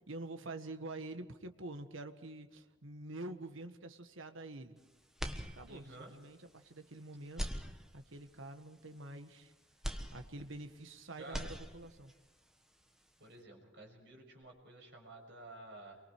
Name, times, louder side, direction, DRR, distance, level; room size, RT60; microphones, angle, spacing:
voice 1, 0.0-4.8 5.5-7.4 7.9-9.5 10.1-12.1, right 2 dB, 70° right, 8 dB, 1.5 m, -47 dB
sound 1, 5.2-6.1 6.5-6.6 7.3-8.3 9.8-10.9 11.2-12.1, equal, ahead, 1.3 m, -42 dB
voice 2, 5.7-6.1 11.2-11.5 13.2-16.0, right 2 dB, 55° right, 0 dB, 6.3 m, -52 dB
28.5 x 23.5 x 4.8 m, 1.2 s
head